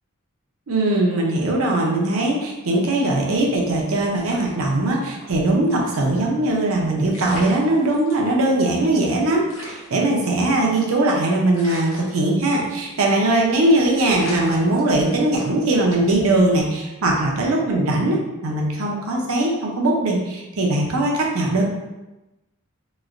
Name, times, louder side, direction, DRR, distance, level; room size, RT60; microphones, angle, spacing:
voice 1, 0.7-21.6, right 2 dB, 75° right, -1 dB, 0.7 m, -20 dB
sound 1, 4.1-5.3 5.6-5.7 6.8-6.9 7.1-8.3 8.8-8.9 9.0-9.1 9.5-11.0 11.5-12.8 13.1-13.4 13.7-13.8 14.1-15.4 15.9-16.2, left 1 dB, 60° left, 0.9 m, -39 dB
3.1 x 2.8 x 2.5 m, 1.0 s
head